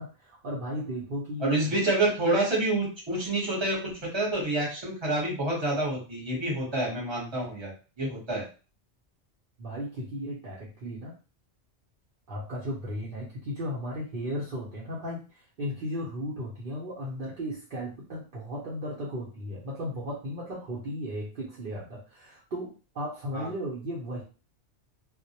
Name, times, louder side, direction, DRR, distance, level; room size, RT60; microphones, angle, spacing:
voice 1, 0.0-1.8 9.6-11.1 12.3-15.3 15.6-24.2, equal, 55° right, -6 dB, 0.7 m, -35 dB
voice 2, 1.4-7.7 8.0-8.4 23.3-23.5, right 2 dB, 25° right, -4 dB, 0.9 m, -28 dB
2.2 x 2.0 x 2.7 m, 0.35 s
omnidirectional pair, 1.2 m